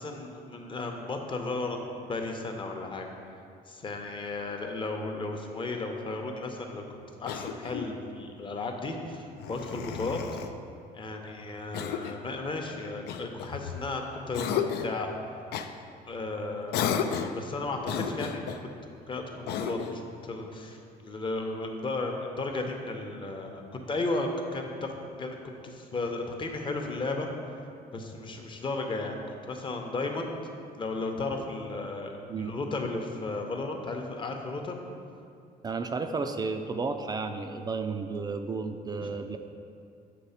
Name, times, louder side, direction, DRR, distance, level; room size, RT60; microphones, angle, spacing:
voice 1, 0.0-3.1 3.7-10.2 10.9-15.1 16.1-18.5 18.9-24.9 25.2-27.3 27.9-30.3 30.8-32.1 32.4-34.8 39.0-39.1, left 2 dB, 30° left, 3 dB, 0.8 m, -34 dB
Cough, 7.2-8.0 9.4-10.5 11.7-12.3 13.1-13.9 14.3-15.0 15.5-15.7 16.7-17.4 17.8-18.6 19.5-20.0, left 8 dB, 75° left, 0.4 m, -33 dB
voice 2, 35.6-39.4, right 4 dB, 25° right, 6 dB, 0.3 m, -32 dB
7.6 x 3.2 x 5.6 m, 2.5 s
cardioid pair, 110°, 17 cm